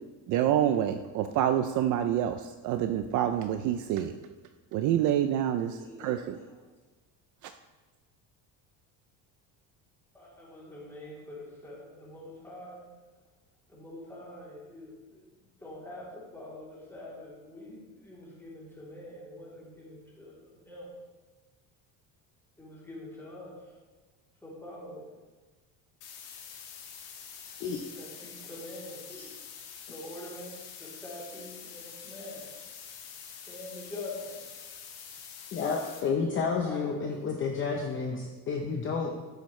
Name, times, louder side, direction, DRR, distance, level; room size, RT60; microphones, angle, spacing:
voice 1, 0.3-4.1 4.7-6.4 7.4-7.5, right 10 dB, 50° right, 0.5 m, -27 dB
voice 2, 5.8-6.6 10.1-12.9 13.7-15.3 15.6-20.9 22.6-23.7 24.4-25.1 27.9-29.3 29.9-32.5 33.5-34.6 36.6-37.1, left 1 dB, 5° left, 3.1 m, -45 dB
sound 1, 26.0-36.0, left 7 dB, 70° left, 2.1 m, -46 dB
voice 3, 35.5-39.1, left 5 dB, 30° left, 0.8 m, -30 dB
13.0 x 10.5 x 3.2 m
cardioid pair, 180°, 39 cm